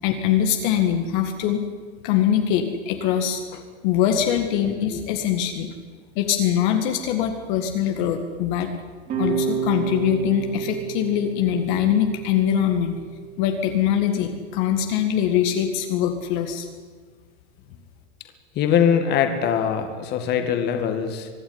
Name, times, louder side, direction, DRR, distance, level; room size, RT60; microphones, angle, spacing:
voice 1, 0.0-1.6 2.0-3.4 3.8-5.7 6.2-8.7 9.2-12.9 13.4-16.7, left 9 dB, 45° left, 6 dB, 1.9 m, -22 dB
sound 1, 9.1-14.2, right 7 dB, 25° right, 3.7 m, -30 dB
voice 2, 18.6-21.3, left 8 dB, 30° left, 7 dB, 2.1 m, -22 dB
24.5 x 11.0 x 9.7 m, 1.5 s
supercardioid pair, 165°, 34 cm